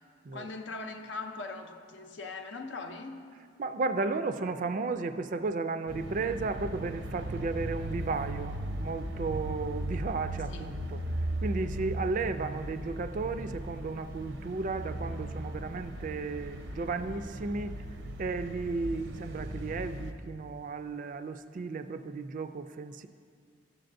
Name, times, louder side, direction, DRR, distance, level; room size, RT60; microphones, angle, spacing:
voice 1, 0.3-3.2 10.5-10.7, left 3 dB, 80° left, 4 dB, 0.7 m, -40 dB
voice 2, 3.6-11.0 11.4-17.8 18.2-23.1, right 3 dB, 45° right, 9 dB, 0.4 m, -34 dB
sound 1, 5.9-20.1, right 1 dB, 85° right, 0.8 m, -37 dB
13.5 x 7.7 x 2.6 m, 2.1 s
head